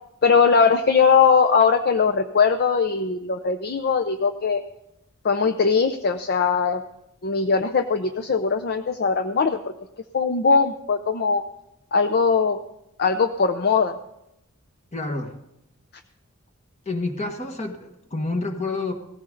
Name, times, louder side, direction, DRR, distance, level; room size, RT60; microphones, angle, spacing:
voice 1, 0.2-4.6 5.2-6.8 7.2-9.6 10.1-11.4 11.9-12.6 13.0-14.0, left 5 dB, 50° left, 7 dB, 0.6 m, -20 dB
voice 2, 14.9-15.3 16.8-18.9, left 2 dB, 35° left, 5 dB, 1.6 m, -28 dB
17.5 x 14.5 x 3.9 m, 0.83 s
head